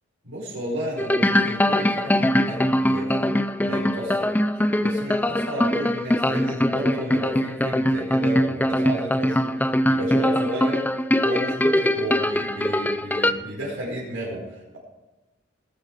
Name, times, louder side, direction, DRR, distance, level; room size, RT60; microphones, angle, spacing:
voice 1, 0.2-3.4 3.6-4.3 4.5-10.9 11.2-14.8, right 1 dB, 80° right, -7 dB, 5.1 m, -32 dB
sound 1, 1.0-13.3, left 1 dB, 10° left, 0.4 m, -22 dB
20.0 x 8.9 x 5.0 m, 1.1 s
head